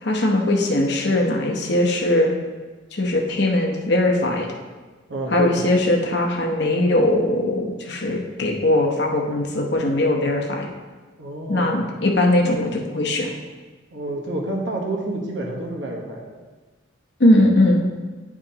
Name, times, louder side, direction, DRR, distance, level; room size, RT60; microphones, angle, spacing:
voice 1, 0.0-2.3 2.9-4.5 5.3-10.7 11.5-13.3 17.2-17.8, left 1 dB, 55° left, 1 dB, 0.9 m, -20 dB
voice 2, 5.1-5.8 11.2-11.8 13.9-16.4, right 2 dB, 65° right, 0 dB, 1.2 m, -29 dB
10.0 x 4.9 x 2.9 m, 1.3 s
head